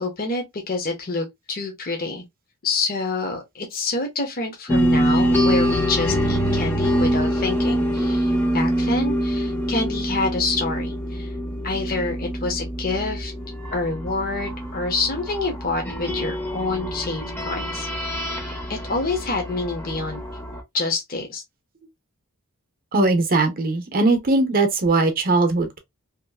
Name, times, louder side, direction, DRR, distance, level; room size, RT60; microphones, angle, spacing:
voice 1, 0.0-2.2 2.6-11.3 11.6-13.3 13.7-17.9 18.7-20.2 20.7-21.4, left 3 dB, 40° left, 0.9 m, -27 dB
sound 1, 4.7-20.6, equal, 10° left, 0.7 m, -25 dB
voice 2, 22.9-25.8, right 2 dB, 40° right, 0.7 m, -20 dB
2.9 x 2.5 x 2.3 m
head